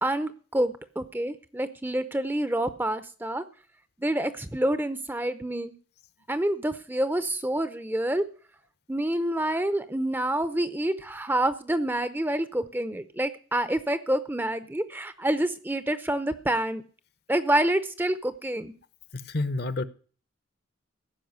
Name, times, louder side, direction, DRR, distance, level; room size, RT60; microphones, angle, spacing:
voice 1, 0.0-3.4 4.0-5.7 6.3-8.3 8.9-16.8 17.3-18.7, right 1 dB, 10° right, 0.6 m, -27 dB
voice 2, 19.1-19.9, left 2 dB, 50° left, 0.9 m, -29 dB
15.0 x 6.0 x 9.4 m
head